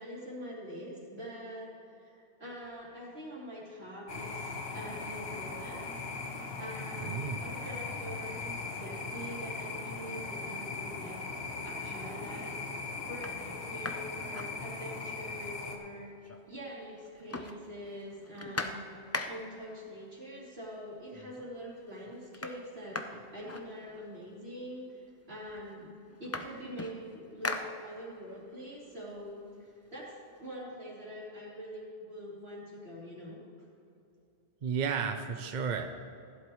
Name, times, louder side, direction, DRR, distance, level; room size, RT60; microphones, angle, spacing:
voice 1, 0.0-16.1 16.5-30.1 30.4-33.4, equal, 70° right, -6 dB, 3.3 m, -45 dB
sound 1, 4.1-15.8, left 4 dB, 65° left, 1.3 m, -39 dB
voice 2, 7.0-7.4 34.6-35.9, right 6 dB, 50° right, 5 dB, 0.6 m, -33 dB
sound 2, 13.2-15.2 15.5-15.6 15.8-16.7 17.0-19.7 20.6-20.7 21.1-21.6 21.9-24.3 25.1-25.2 25.5-28.3 28.7-30.4, left 2 dB, 20° left, 0.4 m, -41 dB
16.0 x 10.5 x 3.1 m, 2.6 s
omnidirectional pair, 1.1 m